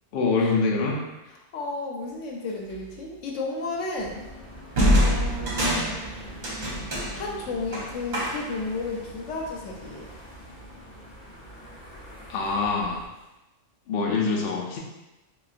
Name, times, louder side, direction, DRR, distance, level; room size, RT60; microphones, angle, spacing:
voice 1, 0.1-1.0 12.3-13.0 13.9-14.8, left 4 dB, 60° left, -1 dB, 0.7 m, -24 dB
voice 2, 1.5-4.2 4.9-5.9 7.1-10.1, left 3 dB, 90° left, -1 dB, 1.0 m, -33 dB
sound 1, 2.7-2.9 4.7-8.7, equal, 45° right, 0.8 m, -25 dB
sound 2, 3.9-13.1, equal, 35° left, 0.9 m, -44 dB
3.9 x 2.2 x 2.4 m, 1.0 s
omnidirectional pair, 1.3 m